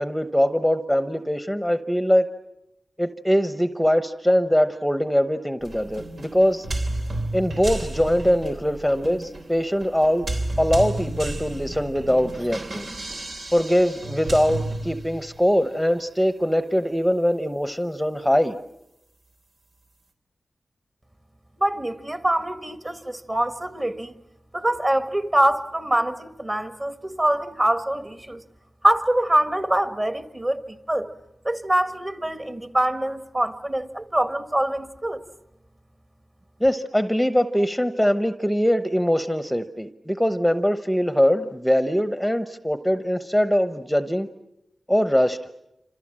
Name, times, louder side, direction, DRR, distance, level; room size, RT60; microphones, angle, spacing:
voice 1, 0.0-2.3 3.0-6.7 7.3-10.3 10.6-12.9 13.5-18.6 36.6-44.3 44.9-45.4, equal, ahead, 0.9 m, -22 dB
sound 1, 5.6-15.5, right 1 dB, 70° right, 3.6 m, -32 dB
voice 2, 21.6-24.1 24.5-28.4 28.8-31.1 31.4-35.2, right 1 dB, 25° right, 1.7 m, -24 dB
27.5 x 27.0 x 7.6 m
wide cardioid pair, 70°, 0 cm